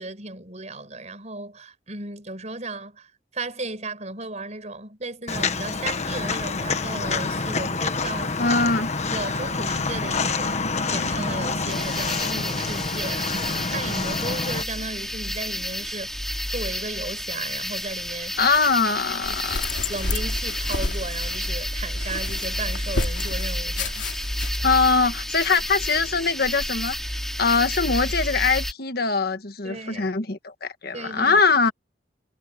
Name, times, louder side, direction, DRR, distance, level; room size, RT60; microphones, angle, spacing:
voice 1, 0.0-3.1 3.3-8.4 9.1-10.6 10.9-16.1 16.5-18.5 19.9-24.1 29.6-30.1 30.9-31.4, right 2 dB, 40° right, 5.8 m, -35 dB
Walk footsteps, 5.3-14.6, left 4 dB, 40° left, 1.4 m, -27 dB
voice 2, 8.4-8.9 18.4-19.7 24.6-31.7, left 4 dB, 55° left, 1.5 m, -22 dB
sound 1, 11.7-28.7, equal, ahead, 4.9 m, -30 dB
sound 2, 19.2-25.0, left 2 dB, 90° left, 2.7 m, -31 dB
head